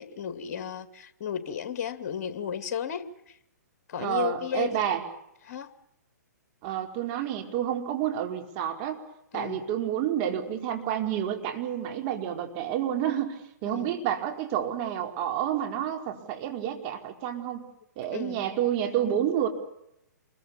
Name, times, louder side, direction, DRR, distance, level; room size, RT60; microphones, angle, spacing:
voice 1, 0.0-3.4 3.9-4.8 5.4-5.7 9.3-9.7 13.7-13.9 18.1-18.4, left 8 dB, 50° left, 11 dB, 2.3 m, -34 dB
voice 2, 4.0-5.0 6.6-9.0 9.3-17.7 18.0-19.5, right 10 dB, 35° right, 3 dB, 4.9 m, -29 dB
28.0 x 23.0 x 7.1 m, 0.78 s
hypercardioid pair, 130°, 10 cm